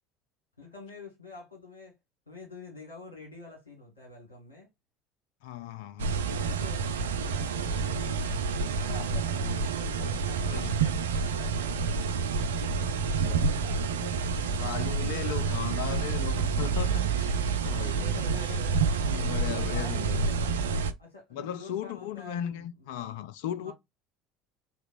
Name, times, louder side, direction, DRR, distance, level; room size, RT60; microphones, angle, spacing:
voice 1, 0.6-1.9 2.3-4.7 6.2-8.3 8.7-12.0 12.4-13.0 13.4-14.1 18.0-19.1 19.5-20.6 21.0-22.7 23.6-23.7, left 2 dB, 80° left, 1.4 m, -47 dB
voice 2, 5.4-6.2 9.3-9.6 9.9-10.0 10.4-10.8 13.2-13.5 13.9-14.3 14.6-17.4 17.6-18.2 19.1-20.3 21.3-23.7, left 10 dB, 60° left, 0.3 m, -37 dB
sound 1, 6.0-20.9, right 5 dB, 70° right, 0.3 m, -28 dB
3.9 x 3.0 x 2.4 m
figure-of-eight pair, 65°, 0 cm